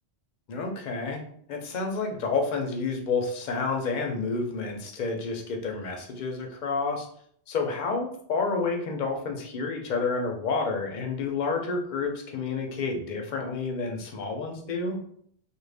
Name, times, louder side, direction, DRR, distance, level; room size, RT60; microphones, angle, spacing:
voice 1, 0.5-1.2 1.5-7.1 7.5-15.0, left 4 dB, 50° left, 2 dB, 0.6 m, -29 dB
2.5 x 2.1 x 3.3 m, 0.64 s
omnidirectional pair, 1.1 m